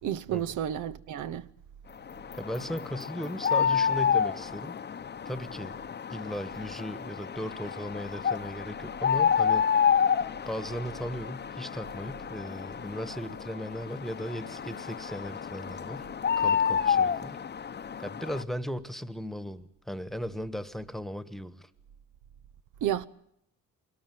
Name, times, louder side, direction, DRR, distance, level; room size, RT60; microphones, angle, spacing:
voice 1, 0.0-1.5 22.8-23.1, right 10 dB, 75° right, 0.8 m, -31 dB
sound 1, 2.1-18.4, left 7 dB, 35° left, 0.8 m, -29 dB
voice 2, 2.3-4.7 5.3-5.8 6.1-9.7 10.5-16.1 16.4-17.4 18.0-21.7, equal, ahead, 1.3 m, -37 dB
22.0 x 19.0 x 7.8 m
cardioid pair, 90°, 30 cm